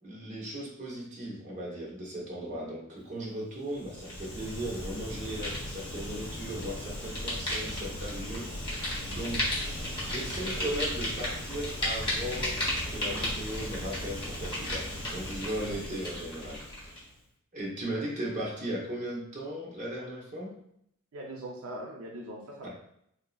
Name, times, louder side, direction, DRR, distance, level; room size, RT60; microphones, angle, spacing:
voice 1, 0.0-8.8 9.1-9.6 10.0-12.6 12.9-16.9 17.5-20.5 22.6-22.7, right 1 dB, 35° right, -3 dB, 0.9 m, -37 dB
Fire, 3.7-17.0, left 1 dB, 25° left, 1.0 m, -34 dB
voice 2, 21.1-22.7, right 1 dB, 75° right, -1 dB, 0.6 m, -41 dB
3.9 x 2.8 x 2.3 m, 0.72 s
head